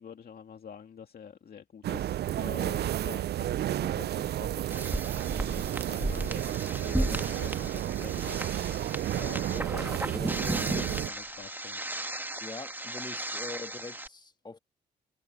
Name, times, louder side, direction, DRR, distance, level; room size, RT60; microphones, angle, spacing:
voice 1, 0.0-5.0 5.6-11.8 12.1-12.4, left 7 dB, 55° left, 2.2 m, -47 dB
sound 1, 1.8-11.1, right 12 dB, 65° right, 0.4 m, -32 dB
sound 2, 4.7-14.1, right 1 dB, 10° right, 1.5 m, -35 dB
voice 2, 12.4-14.6, left 3 dB, 25° left, 1.6 m, -43 dB
supercardioid pair, 60°, 18 cm